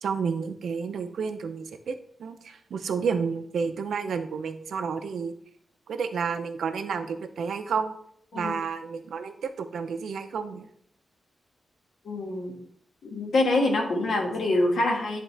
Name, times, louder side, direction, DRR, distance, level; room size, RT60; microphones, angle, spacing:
voice 1, 0.0-5.3 5.9-7.9 8.3-10.7, right 5 dB, 90° right, 8 dB, 0.6 m, -31 dB
voice 2, 12.0-12.6 13.0-15.2, left 2 dB, 75° left, 1 dB, 1.5 m, -25 dB
10.0 x 3.6 x 3.3 m, 0.66 s
wide cardioid pair, 165°, 0 cm